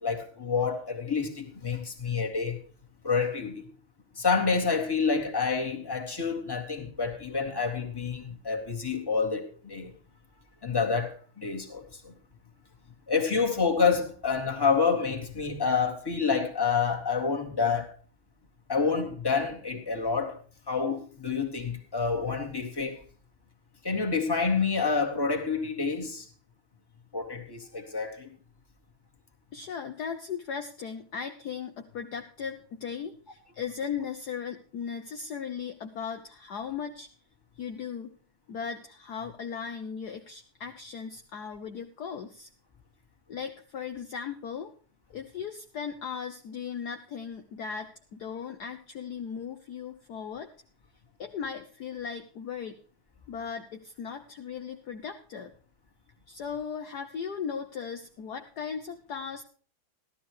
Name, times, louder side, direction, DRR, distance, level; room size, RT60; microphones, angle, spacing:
voice 1, 0.0-2.6 3.0-3.6 4.2-9.9 10.6-12.1 13.1-17.9 18.7-20.4 20.7-23.0 23.8-26.2 27.1-28.3, left 5 dB, 10° left, 1.8 m, -28 dB
voice 2, 29.5-37.1 37.6-38.1 38.5-42.5 43.3-44.7 45.1-50.5 51.2-52.8 53.3-55.5 56.3-59.4, left 7 dB, 60° left, 1.3 m, -37 dB
15.0 x 12.5 x 3.1 m
omnidirectional pair, 2.3 m